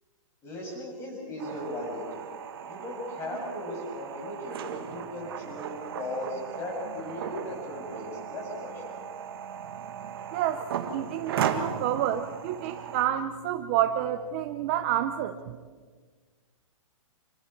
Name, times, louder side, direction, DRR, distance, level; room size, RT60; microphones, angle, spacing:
voice 1, 0.4-2.2 2.7-8.9, left 1 dB, 15° left, -1 dB, 6.9 m, -37 dB
sound 1, 1.4-13.1, right 8 dB, 45° right, 2.0 m, -36 dB
voice 2, 10.3-10.6 10.9-15.6, right 11 dB, 20° right, 7 dB, 0.6 m, -29 dB
28.0 x 27.0 x 4.5 m, 1.5 s
hypercardioid pair, 175°, 17 cm